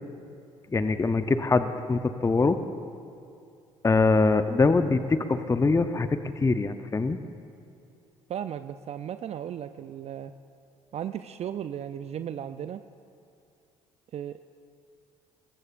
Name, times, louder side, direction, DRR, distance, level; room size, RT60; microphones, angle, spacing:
voice 1, 0.7-2.6 3.8-7.2, left 3 dB, 20° left, 10 dB, 0.7 m, -23 dB
voice 2, 8.3-10.3 10.9-12.8 14.1-14.4, right 9 dB, 40° right, 11 dB, 0.5 m, -35 dB
22.5 x 21.0 x 2.5 m, 2.6 s
hypercardioid pair, 50°, 16 cm